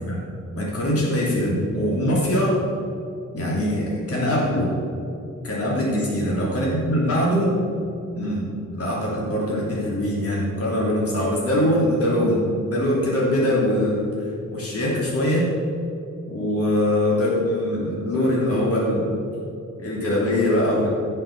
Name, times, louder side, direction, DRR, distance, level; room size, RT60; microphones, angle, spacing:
voice 1, 0.5-2.6 3.3-4.7 5.4-7.6 8.1-15.5 16.3-19.2 19.8-20.9, left 1 dB, 50° left, -5 dB, 3.2 m, -22 dB
15.0 x 6.6 x 7.1 m, 2.7 s
wide cardioid pair, 150°, 29 cm